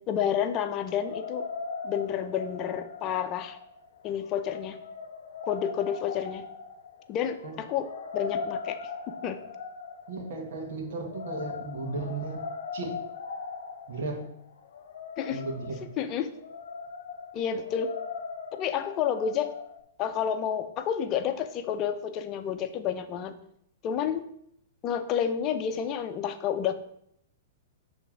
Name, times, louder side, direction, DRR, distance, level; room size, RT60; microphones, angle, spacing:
voice 1, 0.1-1.4 1.8-3.6 4.0-4.8 5.4-6.4 7.1-8.8 9.2-9.4 15.2-15.4 15.8-16.3 17.3-17.9 18.6-19.5 20.0-23.4 23.8-24.3 24.8-26.7, left 8 dB, 35° left, 8 dB, 0.7 m, -30 dB
sound 1, 0.9-19.8, left 5 dB, 75° left, 0.7 m, -40 dB
voice 2, 10.1-12.4 12.7-12.9 13.9-14.3 15.3-15.8, right 3 dB, 65° right, 1 dB, 1.7 m, -35 dB
6.9 x 3.5 x 5.9 m, 0.72 s
hypercardioid pair, 130°, 0 cm